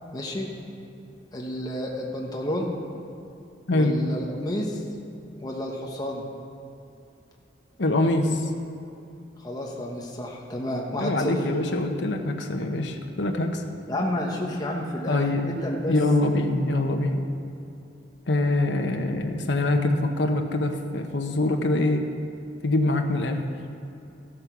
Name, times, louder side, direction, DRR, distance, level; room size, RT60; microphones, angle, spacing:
voice 1, 0.1-0.5 1.3-2.7 3.7-4.8 5.4-6.2 9.4-11.4 13.9-15.9, left 1 dB, 20° left, -1 dB, 1.3 m, -30 dB
voice 2, 7.8-8.4 11.0-13.6 15.1-15.5 15.9-17.2 18.3-22.0 22.6-23.4, left 2 dB, 75° left, 4 dB, 1.1 m, -24 dB
14.0 x 8.7 x 6.1 m, 2.7 s
head